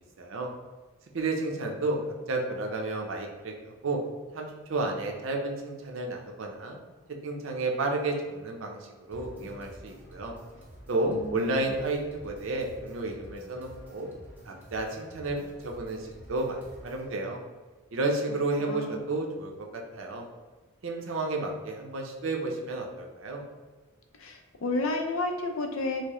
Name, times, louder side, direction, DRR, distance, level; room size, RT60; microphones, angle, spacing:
voice 1, 0.2-0.5 1.1-2.0 2.3-4.0 4.3-6.8 7.2-8.8 9.1-10.3 10.9-14.1 14.5-15.4 15.6-17.4 17.9-20.2 20.8-23.4, right 2 dB, 65° right, 1 dB, 0.6 m, -31 dB
sound 1, 9.1-17.1, equal, 10° right, 0.6 m, -49 dB
voice 2, 11.1-11.7 18.6-19.0 24.2-26.0, left 2 dB, 70° left, 4 dB, 0.5 m, -31 dB
4.5 x 2.1 x 3.0 m, 1.3 s
head